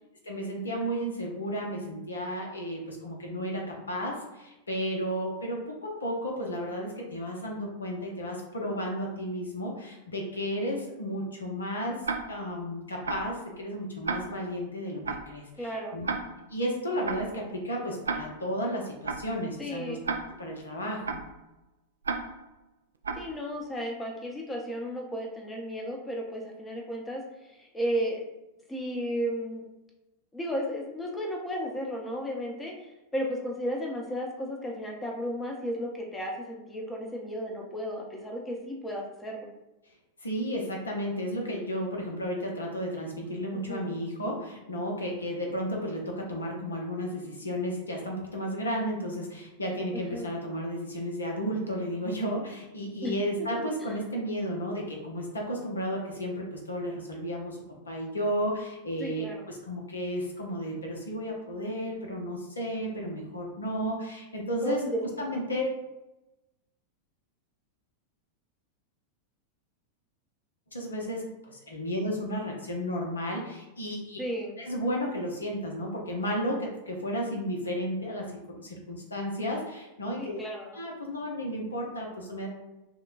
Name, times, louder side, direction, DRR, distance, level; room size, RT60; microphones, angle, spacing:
voice 1, 0.2-16.1 16.5-20.0 20.4-21.2 40.2-57.6 57.9-64.8 65.2-65.8 70.7-74.2 74.6-80.4 80.7-82.5, equal, 75° left, 0 dB, 0.8 m, -33 dB
Tick-tock, 12.0-12.5 13.0-13.4 14.0-14.5 15.0-15.4 16.0-16.5 17.0-17.4 18.0-18.5 19.0-19.4 20.0-20.5 21.0-21.4 22.0-22.5 23.0-23.4, right 4 dB, 70° right, 0.3 m, -34 dB
voice 2, 15.6-16.0 19.6-20.0 23.1-28.2 28.7-29.6 30.3-39.5 43.5-43.9 49.9-50.3 53.0-53.2 53.9-54.0 59.0-59.5 64.6-65.4 74.2-74.6 80.2-80.8, equal, 15° left, 0 dB, 0.7 m, -34 dB
5.7 x 2.2 x 2.5 m, 0.99 s
figure-of-eight pair, 90°, 0 cm